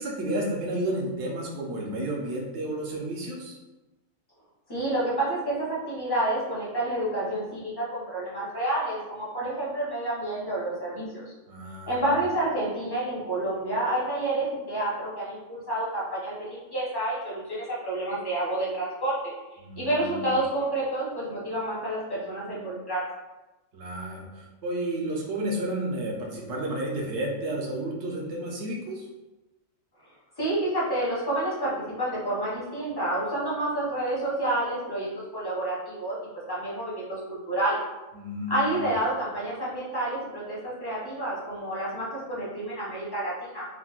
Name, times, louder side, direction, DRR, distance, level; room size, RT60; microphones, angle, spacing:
voice 1, 0.0-3.6 11.5-12.0 19.6-20.4 23.7-29.1 38.1-38.8, right 1 dB, 65° right, -1 dB, 0.9 m, -32 dB
voice 2, 4.7-11.3 11.9-19.2 19.5-23.0 30.4-36.2 36.5-37.8 38.5-43.7, right 1 dB, 25° left, -7 dB, 0.6 m, -29 dB
3.7 x 2.1 x 2.3 m, 1.1 s
omnidirectional pair, 1.4 m